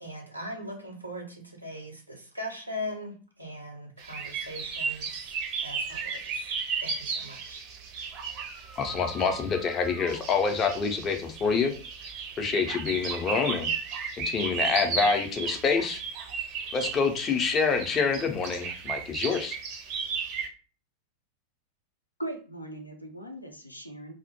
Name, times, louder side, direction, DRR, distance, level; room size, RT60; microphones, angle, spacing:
voice 1, 0.0-5.1 5.6-6.4 6.8-7.6, left 1 dB, 85° right, 2 dB, 0.6 m, -40 dB
sound 1, 4.0-20.5, right 5 dB, 40° right, 0.5 m, -35 dB
voice 2, 8.8-11.7 12.4-13.7 14.3-16.0 16.7-19.6, left 5 dB, 25° left, 4 dB, 0.5 m, -26 dB
voice 3, 22.2-24.1, right 1 dB, 85° left, 4 dB, 0.4 m, -39 dB
2.1 x 2.0 x 2.9 m, 0.37 s
figure-of-eight pair, 90°, 0 cm